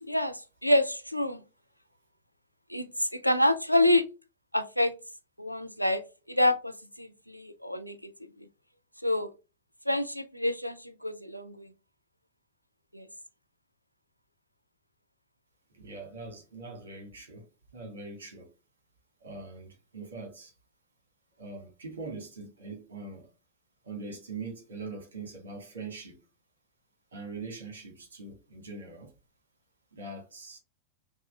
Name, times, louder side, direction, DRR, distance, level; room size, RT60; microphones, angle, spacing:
voice 1, 0.0-1.4 2.7-4.1 4.5-4.9 5.4-6.0 6.3-8.1 9.0-9.3 9.9-11.7 12.9-13.1, left 1 dB, 90° left, 0.3 m, -27 dB
voice 2, 15.7-17.4 17.7-18.5 19.2-20.5 21.4-23.3 23.8-26.2 27.1-29.1 29.9-30.6, right 3 dB, 70° right, 1.4 m, -42 dB
5.5 x 2.4 x 2.3 m
figure-of-eight pair, 90°, 0 cm